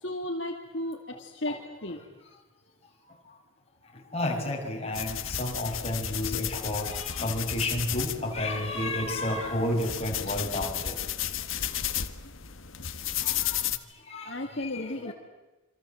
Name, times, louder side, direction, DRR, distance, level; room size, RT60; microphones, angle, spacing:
voice 1, 0.0-1.5 1.8-2.0 14.3-15.1, left 1 dB, 60° left, 2 dB, 2.4 m, -34 dB
voice 2, 4.1-11.0 11.6-11.8 13.2-13.6 14.1-15.1, left 1 dB, 30° left, 1 dB, 5.4 m, -31 dB
sound 1, 4.9-13.8, left 10 dB, 80° left, 1.5 m, -33 dB
27.5 x 26.5 x 7.8 m, 1.1 s
head